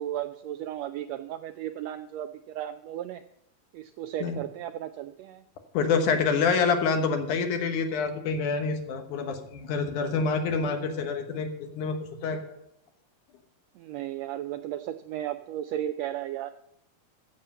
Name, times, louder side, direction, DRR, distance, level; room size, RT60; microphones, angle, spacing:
voice 1, 0.0-3.2 3.7-5.4 10.3-10.4 13.8-16.5, right 12 dB, 85° right, 10 dB, 1.5 m, -35 dB
voice 2, 5.7-11.5 11.7-12.6, left 5 dB, 80° left, 6 dB, 2.7 m, -27 dB
15.0 x 7.5 x 5.5 m, 0.77 s
omnidirectional pair, 3.5 m